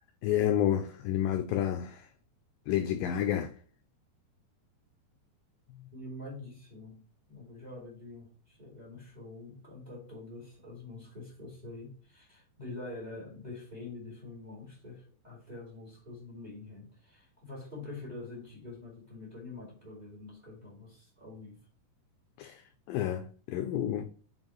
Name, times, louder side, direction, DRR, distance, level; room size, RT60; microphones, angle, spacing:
voice 1, 0.2-2.1 2.7-3.6 22.4-22.6 22.9-24.0, left 10 dB, 85° left, 2.0 m, -30 dB
voice 2, 5.9-21.7, left 2 dB, 10° right, 2.7 m, -46 dB
7.2 x 5.3 x 3.1 m
omnidirectional pair, 4.6 m